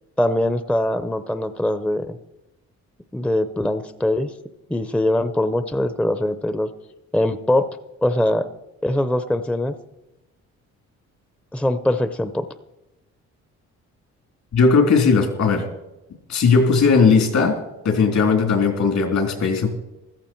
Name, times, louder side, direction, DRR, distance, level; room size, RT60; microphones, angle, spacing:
voice 1, 0.2-2.2 3.1-4.4 4.7-6.7 7.1-8.5 8.8-9.8 11.5-12.5, left 1 dB, 5° left, 11 dB, 0.7 m, -22 dB
voice 2, 14.5-15.7 16.3-19.7, left 5 dB, 65° left, 4 dB, 3.6 m, -17 dB
15.0 x 14.0 x 4.5 m, 0.96 s
cardioid pair, 90°, 30 cm